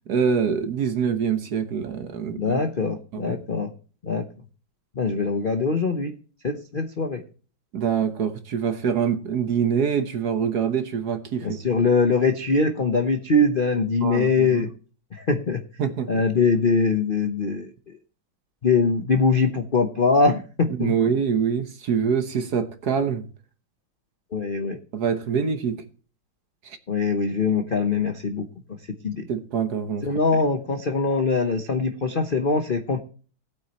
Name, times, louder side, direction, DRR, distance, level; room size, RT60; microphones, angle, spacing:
voice 1, 0.1-2.6 3.1-3.4 7.7-11.6 14.0-14.7 15.8-16.2 20.8-23.2 24.9-25.8 26.6-26.8 29.3-30.0, right 7 dB, 55° right, 1.4 m, -25 dB
voice 2, 2.4-3.7 4.0-4.3 5.0-6.2 6.4-7.2 11.4-14.7 15.1-15.6 16.1-17.7 18.6-20.9 24.3-24.8 26.9-28.4 29.0-29.3 30.0-33.0, left 4 dB, 45° left, 0.7 m, -22 dB
18.0 x 8.5 x 3.0 m
omnidirectional pair, 2.2 m